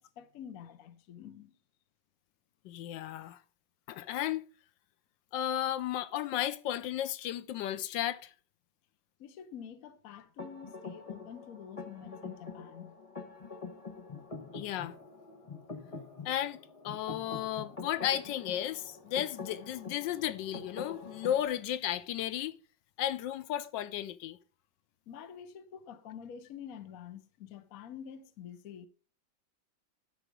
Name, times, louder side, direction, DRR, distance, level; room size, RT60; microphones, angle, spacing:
voice 1, 0.0-1.6 9.2-13.0 25.1-28.9, left 8 dB, 60° left, 1.1 m, -47 dB
voice 2, 2.6-3.4 3.9-4.5 5.3-8.3 14.5-15.0 16.2-22.5 23.0-24.4, left 11 dB, 75° left, 1.2 m, -34 dB
sound 1, 10.4-21.5, left 4 dB, 20° left, 1.1 m, -45 dB
12.0 x 4.9 x 4.9 m
omnidirectional pair, 2.0 m